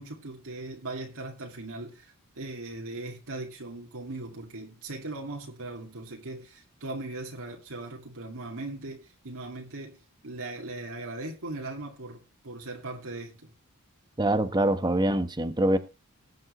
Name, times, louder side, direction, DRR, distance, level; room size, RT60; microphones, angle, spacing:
voice 1, 0.0-13.5, right 2 dB, 70° right, 2.3 m, -39 dB
voice 2, 14.2-15.8, right 1 dB, 20° right, 1.2 m, -24 dB
19.5 x 7.6 x 3.2 m
head